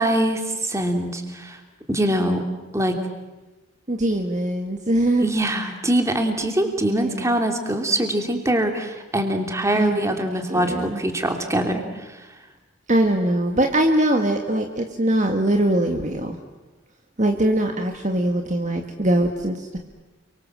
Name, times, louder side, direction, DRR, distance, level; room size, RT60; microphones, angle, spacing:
voice 1, 0.0-1.6 1.9-2.4 2.7-3.0 5.2-11.8, right 1 dB, 15° right, 4 dB, 3.0 m, -23 dB
voice 2, 3.9-5.3 6.8-7.4 9.8-10.0 10.3-11.0 12.9-16.4 17.2-19.8, right 1 dB, 35° right, 4 dB, 1.8 m, -22 dB
29.5 x 24.0 x 7.6 m, 1.2 s
head